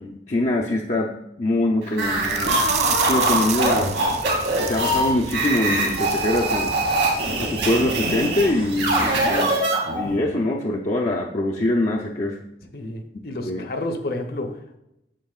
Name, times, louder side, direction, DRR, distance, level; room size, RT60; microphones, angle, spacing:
voice 1, 0.0-2.6 3.1-3.9 4.6-6.7 7.4-9.6 9.9-12.4 13.5-13.7, left 1 dB, 40° left, -2 dB, 0.5 m, -23 dB
sound 1, 1.9-10.2, right 1 dB, 90° right, 2.4 m, -23 dB
sound 2, 2.0-9.4, right 1 dB, 55° right, 1.2 m, -37 dB
sound 3, 2.2-7.3 7.6-7.7 8.1-8.2, right 9 dB, 40° right, 0.4 m, -31 dB
voice 2, 12.7-14.8, left 1 dB, 55° left, 4 dB, 0.9 m, -30 dB
9.0 x 7.2 x 2.4 m, 0.85 s
head